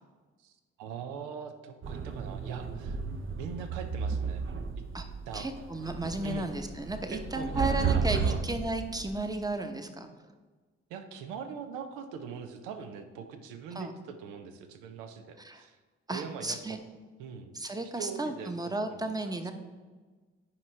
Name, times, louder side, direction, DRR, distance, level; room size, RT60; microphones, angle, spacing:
voice 1, 0.8-3.0 3.4-4.4 5.3-5.5 6.2-6.5 7.1-7.6 7.9-8.4 10.9-15.8 16.1-16.6 17.2-17.5 18.0-19.5, right 6 dB, 85° right, 8 dB, 0.6 m, -42 dB
sound 1, 1.8-9.5, right 5 dB, 40° right, 0.7 m, -33 dB
voice 2, 5.3-10.1 13.7-13.9 15.4-15.6 16.1-16.8 17.5-19.5, right 2 dB, 10° right, 7 dB, 0.9 m, -34 dB
9.7 x 4.6 x 3.2 m, 1.4 s
hypercardioid pair, 45°, 31 cm